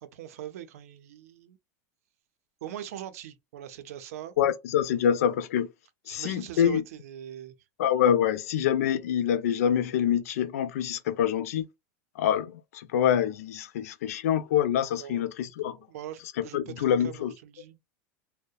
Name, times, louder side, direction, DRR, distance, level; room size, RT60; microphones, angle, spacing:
voice 1, 0.0-1.6 2.6-4.3 6.1-7.5 15.0-15.2 15.9-17.8, right 11 dB, 75° right, 0.5 m, -41 dB
voice 2, 4.4-5.7 6.1-6.8 7.8-11.6 12.2-15.8 16.4-17.3, left 9 dB, 75° left, 0.4 m, -26 dB
2.7 x 2.1 x 2.2 m
supercardioid pair, 180°, 8 cm